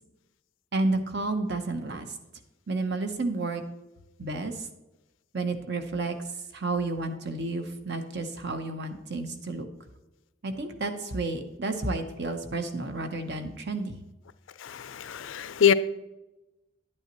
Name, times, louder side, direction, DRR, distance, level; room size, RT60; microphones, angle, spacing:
voice 1, 0.7-2.2 2.7-3.6 4.2-4.7 5.3-6.2 6.5-9.7 10.4-14.0, right 2 dB, 60° right, 7 dB, 0.9 m, -31 dB
voice 2, 14.6-15.7, left 8 dB, 85° left, 14 dB, 0.5 m, -24 dB
10.5 x 8.8 x 3.0 m, 1.0 s
head